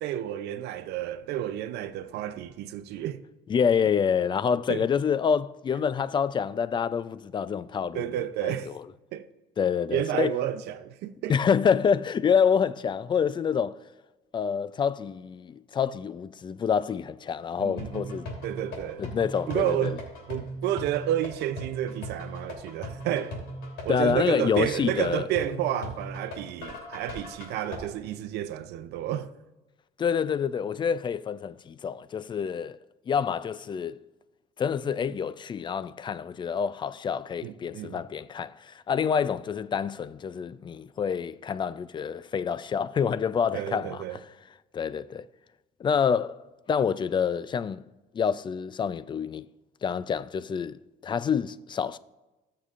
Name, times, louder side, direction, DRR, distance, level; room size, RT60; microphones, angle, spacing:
voice 1, 0.0-3.2 4.7-4.9 7.9-8.7 9.1-9.3 9.9-11.3 17.6-18.1 18.4-19.0 19.5-20.0 20.3-23.4 23.8-29.3 37.4-38.0 43.5-44.2, right 11 dB, 80° right, 0.6 m, -31 dB
voice 2, 3.5-8.8 9.6-10.3 11.3-13.8 14.3-18.3 19.0-20.0 23.9-25.3 30.0-32.8 33.1-34.0 34.6-44.2 44.7-45.3 45.8-46.4 46.7-47.9 48.1-49.5 49.8-52.0, left 7 dB, 30° left, 0.4 m, -27 dB
sound 1, 17.8-27.8, equal, 80° left, 3.3 m, -39 dB
19.5 x 6.7 x 2.5 m
cardioid pair, 110°, 17 cm